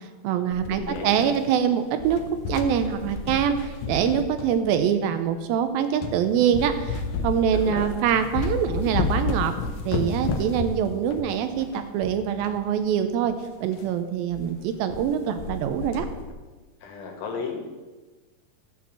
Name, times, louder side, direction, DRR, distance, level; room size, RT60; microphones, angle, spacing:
voice 1, 0.2-2.2 2.5-9.5 9.9-13.3 13.6-16.1, right 8 dB, 80° right, 9 dB, 2.3 m, -24 dB
sound 1, 0.5-1.6 1.9-4.9 5.5-5.6 6.0-6.2 6.5-12.6 12.9-13.0 13.2-13.3 13.7-13.9 14.3-14.5 14.7-15.1 15.4-16.3, left 4 dB, 75° left, 1.9 m, -31 dB
voice 2, 0.8-1.3 7.5-7.9 16.8-17.6, left 5 dB, 55° left, 2 dB, 2.4 m, -34 dB
12.5 x 4.4 x 7.4 m, 1.3 s
omnidirectional pair, 4.3 m